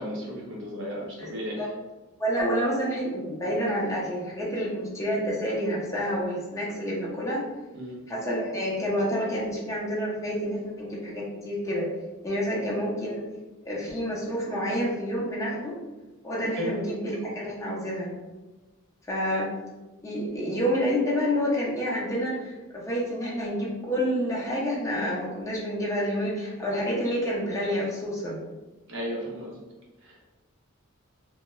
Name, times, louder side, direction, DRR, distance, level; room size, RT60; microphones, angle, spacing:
voice 1, 0.0-1.7 7.7-8.0 12.5-12.7 16.6-16.8 28.9-29.6 30.0-30.2, equal, 55° right, -3 dB, 0.7 m, -34 dB
voice 2, 2.2-7.4 8.1-11.9 12.2-13.2 13.6-15.6 16.2-18.1 19.1-19.5 20.0-28.4, equal, 15° left, -5 dB, 0.6 m, -28 dB
2.2 x 2.2 x 3.0 m, 1.2 s
head